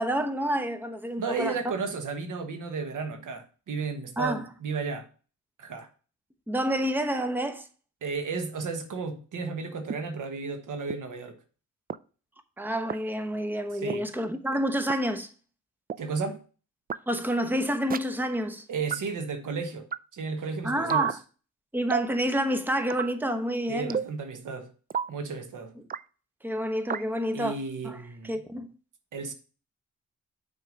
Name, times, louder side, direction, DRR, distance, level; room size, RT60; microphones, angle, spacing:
voice 1, 0.0-1.6 4.2-4.5 6.5-7.7 12.6-15.3 17.1-18.6 20.6-21.2 21.7-24.0 26.4-27.6 27.8-28.0 28.2-28.7, equal, 5° right, 0.9 m, -28 dB
voice 2, 1.2-5.1 5.6-5.9 8.0-11.4 13.7-14.1 16.0-16.4 18.7-19.9 20.1-21.2 23.7-24.7 25.1-25.7 27.3-28.4 29.1-29.3, right 4 dB, 85° right, 1.2 m, -33 dB
sound 1, 9.9-10.0 10.9-11.0 11.9-12.0 12.9-13.0 13.9-14.0 14.9-15.0 15.9-16.0 16.9-17.0 17.9-18.0 18.9-19.0 19.9-20.0 20.9-21.1 21.9-22.1 22.9-23.1 23.9-24.1 24.9-25.1 25.9-26.0 26.9-27.1, right 8 dB, 30° right, 0.4 m, -29 dB
6.2 x 4.5 x 5.1 m
cardioid pair, 75°, 31 cm